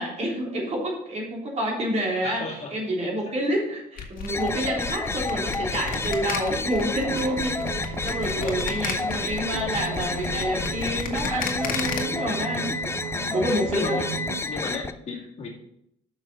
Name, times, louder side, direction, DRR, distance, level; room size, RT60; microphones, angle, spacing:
voice 1, 0.0-2.4 2.7-7.6 8.0-12.7 13.3-14.0, right 1 dB, 40° right, -2 dB, 3.5 m, -28 dB
voice 2, 2.2-2.7 3.3-3.4 8.4-8.6 13.2-13.5 13.7-14.1 14.5-15.5, left 4 dB, 40° left, -1 dB, 2.1 m, -34 dB
sound 1, 4.0-12.0, left 6 dB, 55° left, 1.6 m, -33 dB
sound 2, 4.3-14.9, left 3 dB, 15° left, 0.5 m, -30 dB
sound 3, 7.1-14.4, right 8 dB, 75° right, 0.9 m, -36 dB
6.5 x 6.4 x 6.8 m, 0.76 s
cardioid pair, 110°, 17 cm